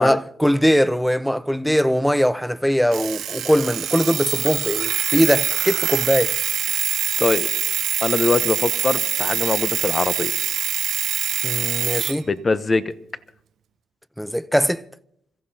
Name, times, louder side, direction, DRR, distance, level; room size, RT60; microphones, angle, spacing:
voice 1, 0.0-6.3 11.4-12.3 14.2-14.8, equal, ahead, 0.5 m, -20 dB
Alarm, 2.9-12.2, right 10 dB, 70° right, 0.5 m, -24 dB
voice 2, 7.2-7.5 8.0-10.3 12.3-12.9, left 3 dB, 30° left, 0.7 m, -22 dB
27.0 x 15.0 x 2.8 m
cardioid pair, 90°, 0 cm